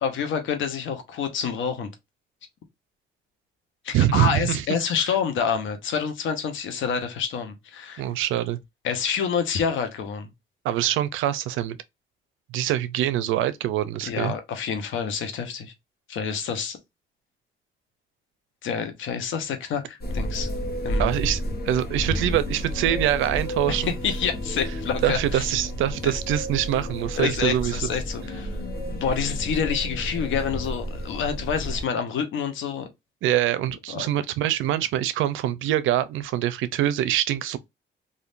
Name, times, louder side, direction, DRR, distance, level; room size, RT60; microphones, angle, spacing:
voice 1, 0.0-1.9 3.8-8.0 8.8-10.3 14.1-15.7 16.1-16.8 18.6-20.5 20.8-21.1 23.7-25.5 26.0-26.1 27.2-28.5 29.0-32.9 33.9-34.0, left 7 dB, 75° left, 1.0 m, -27 dB
voice 2, 3.9-4.6 8.0-8.6 10.6-11.8 12.5-14.3 21.0-21.4 21.7-23.9 25.0-27.8 33.2-37.6, right 12 dB, 85° right, 0.5 m, -24 dB
sound 1, 20.0-31.8, equal, 50° left, 1.2 m, -31 dB
3.5 x 2.6 x 2.5 m
cardioid pair, 90°, 20 cm